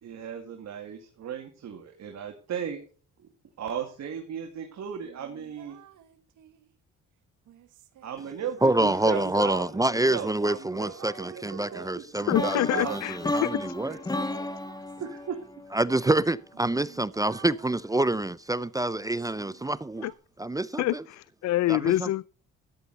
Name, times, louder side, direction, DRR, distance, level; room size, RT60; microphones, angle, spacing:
voice 1, 0.0-2.8 3.6-5.8 8.0-12.0 12.3-13.0 13.8-14.5 15.0-15.4, right 8 dB, 60° right, 2.3 m, -36 dB
sound 1, 5.0-6.7 7.4-10.0 10.8-15.5 16.1-16.2 16.5-18.3 18.9-20.1, right 11 dB, 90° right, 1.5 m, -53 dB
voice 2, 8.6-13.9 15.7-20.0 20.4-21.0 21.7-22.1, right 2 dB, 10° right, 0.5 m, -27 dB
voice 3, 12.3-13.7 14.0-14.1 20.0-20.1 20.8-22.2, left 16 dB, 65° left, 0.4 m, -27 dB
sound 2, 12.3-16.3, left 2 dB, 15° left, 1.0 m, -33 dB
14.0 x 9.7 x 4.1 m
cardioid pair, 90°, 30 cm